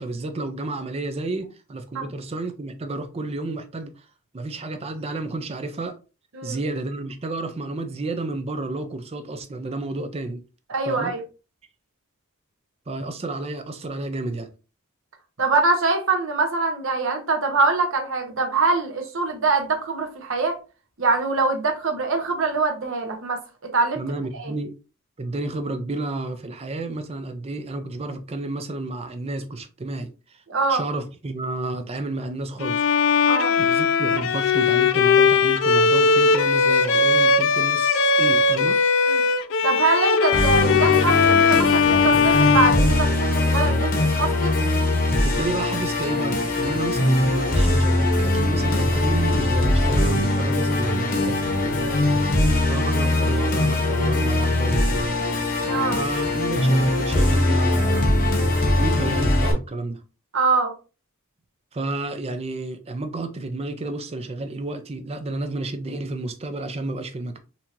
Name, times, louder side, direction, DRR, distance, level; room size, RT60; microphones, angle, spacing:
voice 1, 0.0-4.1 4.3-6.0 6.4-10.4 10.9-11.1 12.9-14.5 24.0-24.8 25.2-30.4 30.7-32.9 33.6-38.8 45.2-51.4 52.7-55.2 56.0-58.1 58.7-60.0 61.7-67.4, right 2 dB, 30° right, 0.4 m, -31 dB
voice 2, 10.7-11.2 15.4-20.6 21.0-24.0 24.3-24.5 30.5-30.8 33.3-33.5 39.0-39.2 39.6-44.5 51.8-52.1 55.6-56.0 60.3-60.7, right 3 dB, 60° right, 0.9 m, -23 dB
Bowed string instrument, 32.6-43.6, left 5 dB, 60° left, 0.3 m, -19 dB
Musical instrument, 40.3-59.5, left 1 dB, 40° left, 0.8 m, -21 dB
4.4 x 2.8 x 2.5 m
head